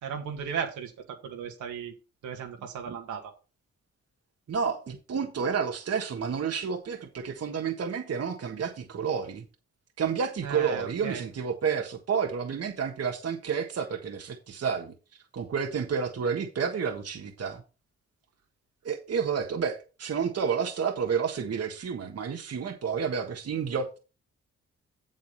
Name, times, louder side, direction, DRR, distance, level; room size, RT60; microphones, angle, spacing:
voice 1, 0.0-1.9 2.2-3.3 10.4-11.2, right 7 dB, 80° right, 2.0 m, -35 dB
voice 2, 4.5-9.4 10.0-14.9 15.3-17.6 18.8-24.0, right 6 dB, 55° right, 1.5 m, -30 dB
7.7 x 7.4 x 4.1 m
supercardioid pair, 50°, 30 cm